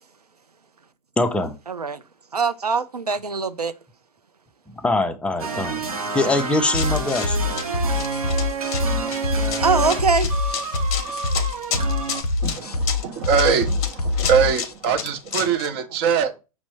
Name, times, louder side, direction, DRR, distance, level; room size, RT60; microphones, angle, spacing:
voice 1, 1.2-1.6 4.8-5.9 6.1-7.4, left 2 dB, 5° left, 0.4 m, -23 dB
voice 2, 1.7-2.0 2.3-3.7 9.6-10.3, right 4 dB, 90° right, 0.4 m, -22 dB
sound 1, 5.4-12.2, right 5 dB, 70° right, 0.8 m, -29 dB
Run, 6.5-15.7, left 8 dB, 35° left, 0.7 m, -32 dB
sound 2, 6.7-14.7, left 3 dB, 85° left, 0.4 m, -25 dB
voice 3, 12.4-16.4, right 7 dB, 45° right, 0.7 m, -22 dB
6.0 x 2.0 x 3.0 m
figure-of-eight pair, 100°, 19 cm